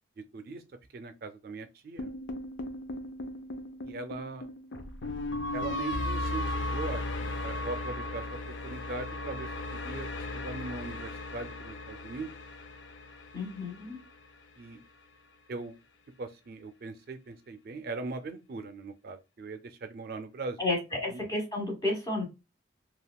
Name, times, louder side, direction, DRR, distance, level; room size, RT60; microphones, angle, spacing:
voice 1, 0.2-0.6 0.9-2.1 3.8-4.5 5.5-12.3 14.6-14.8 15.5-15.7 16.2-20.6 21.1-21.2, right 3 dB, 50° right, 0.4 m, -40 dB
sound 1, 2.0-14.2, left 1 dB, 80° left, 0.5 m, -36 dB
voice 2, 13.3-14.0 20.6-22.2, left 2 dB, 20° left, 1.2 m, -31 dB
3.5 x 2.3 x 2.2 m
head